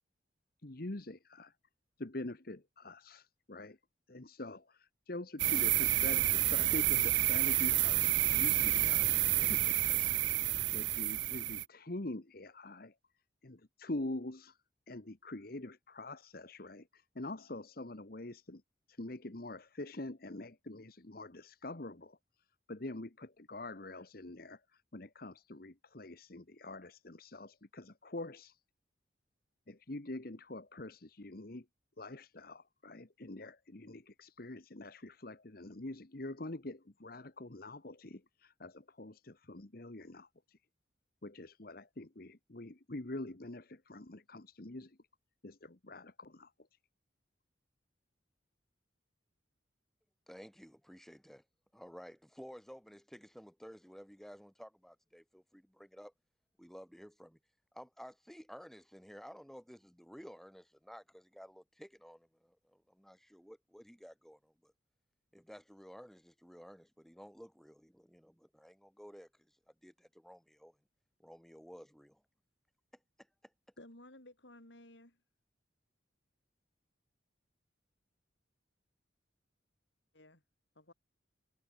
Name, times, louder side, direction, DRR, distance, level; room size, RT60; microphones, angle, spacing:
voice 1, 0.6-1.5 2.0-3.8 4.1-12.9 13.4-14.6 14.9-18.6 18.9-22.2 22.7-28.6 29.7-31.6 32.0-40.6 41.2-45.0 45.4-46.5, left 2 dB, 50° left, 1.3 m, -45 dB
sound 1, 5.4-11.6, right 15 dB, 70° right, 0.7 m, -29 dB
voice 2, 50.3-51.4 51.7-56.1 56.6-57.4 57.7-64.7 65.3-70.8 71.2-72.2 73.2-73.5, equal, ahead, 3.0 m, -54 dB
voice 3, 73.8-75.2 80.1-80.4 80.8-80.9, left 1 dB, 70° left, 5.8 m, -55 dB
head